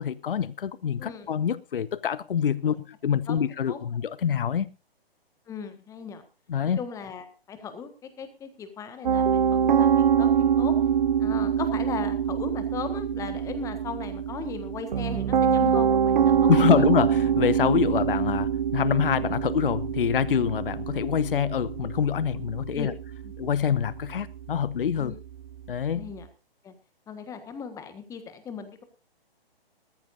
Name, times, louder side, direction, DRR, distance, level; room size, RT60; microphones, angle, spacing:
voice 1, 0.0-4.7 6.5-6.8 16.5-22.9 23.4-25.1 25.7-26.1, left 8 dB, 60° left, 0.6 m, -26 dB
voice 2, 3.3-3.8 5.5-6.2 6.8-10.7 11.2-16.9 22.7-22.9 23.2-23.3 25.0-25.2 25.9-26.3 26.6-26.7 27.1-28.8, left 6 dB, 10° left, 1.5 m, -38 dB
Piano, 9.0-26.2, right 8 dB, 50° right, 1.1 m, -25 dB
19.0 x 14.0 x 2.6 m
figure-of-eight pair, 130°, 31 cm